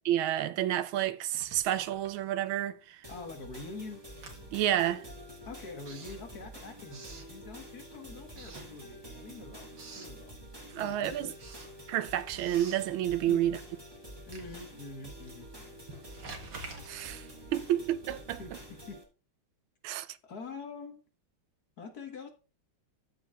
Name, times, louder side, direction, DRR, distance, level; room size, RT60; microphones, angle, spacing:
voice 1, 0.1-3.0 4.5-5.1 10.7-11.3 11.9-13.6 16.9-18.4 19.8-20.2, right 12 dB, 80° right, 1.5 m, -30 dB
Writing, 1.2-2.8 3.1-7.9 8.3-9.3 9.5-10.2 10.6-18.3, right 3 dB, 60° right, 2.3 m, -51 dB
sound 1, 3.0-19.0, equal, 10° right, 2.1 m, -48 dB
voice 2, 3.1-4.0 5.4-9.7 10.0-10.4 10.8-11.3 13.3-13.4 14.3-15.8 18.4-19.0 20.2-21.0 21.8-22.3, left 3 dB, 50° left, 1.9 m, -45 dB
13.5 x 4.9 x 3.5 m
omnidirectional pair, 2.3 m